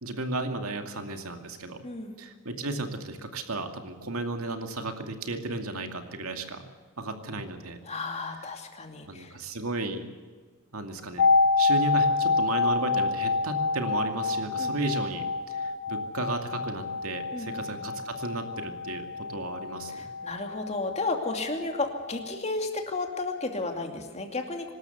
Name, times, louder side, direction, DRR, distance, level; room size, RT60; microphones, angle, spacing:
voice 1, 0.0-1.8 2.2-6.6 7.0-7.8 9.1-10.0 10.7-11.3 11.6-20.0, right 2 dB, 80° right, 6 dB, 2.4 m, -34 dB
voice 2, 1.8-2.2 7.8-9.4 14.6-14.7 17.3-17.8 19.9-24.7, left 3 dB, 30° left, 4 dB, 2.6 m, -33 dB
sound 1, 11.2-20.9 21.2-21.3, left 4 dB, 80° left, 2.3 m, -27 dB
25.0 x 13.0 x 8.1 m, 1.5 s
head